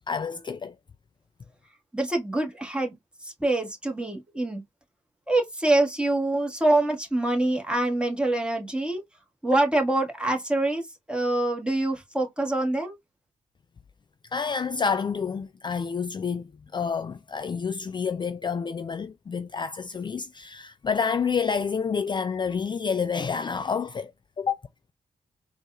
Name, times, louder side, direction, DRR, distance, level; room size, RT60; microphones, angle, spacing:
voice 1, 0.1-0.7 14.3-24.1 24.4-24.6, left 6 dB, 35° left, 0.3 m, -29 dB
voice 2, 1.9-2.9 3.2-4.6 5.3-9.0 9.4-13.0, right 2 dB, 5° right, 1.5 m, -25 dB
3.9 x 2.4 x 2.3 m
supercardioid pair, 45°, 14 cm